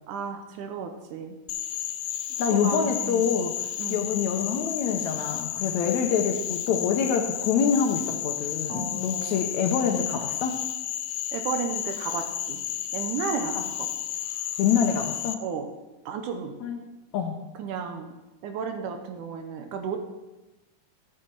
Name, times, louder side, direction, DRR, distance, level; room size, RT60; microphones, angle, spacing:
voice 1, 0.1-1.3 2.6-2.8 3.0-3.3 3.8-4.1 8.7-9.4 11.3-12.6 12.9-13.9 15.4-15.7 16.1-16.5 17.6-18.1 18.4-20.0, right 6 dB, 75° right, 5 dB, 2.1 m, -33 dB
Frog, 1.5-15.4, left 11 dB, 85° left, 2.4 m, -32 dB
voice 2, 2.4-3.5 3.9-10.5 13.6-13.7 14.6-15.4 16.6-16.8 17.1-17.4, left 7 dB, 70° left, 3 dB, 1.8 m, -26 dB
13.5 x 7.4 x 4.6 m, 1.1 s
omnidirectional pair, 4.0 m